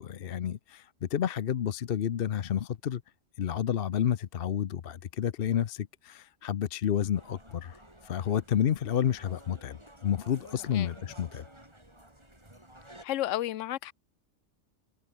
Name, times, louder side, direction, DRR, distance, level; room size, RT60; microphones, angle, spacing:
voice 1, 0.0-3.0 3.4-7.8 8.0-11.4, left 9 dB, 55° left, 0.9 m, -30 dB
sound 1, 7.1-13.0, right 1 dB, 20° right, 5.4 m, -53 dB
voice 2, 13.0-13.9, left 13 dB, 85° left, 1.0 m, -32 dB
omnidirectional pair, 1.2 m